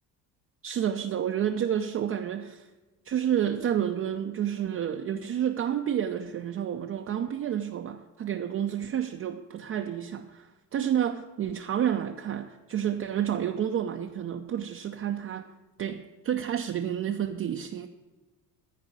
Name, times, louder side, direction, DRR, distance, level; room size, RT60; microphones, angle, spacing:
voice 1, 0.6-2.7 3.0-15.5 15.8-17.9, right 9 dB, 30° right, 4 dB, 0.6 m, -30 dB
14.0 x 4.8 x 8.4 m, 1.2 s
figure-of-eight pair, 55°, 49 cm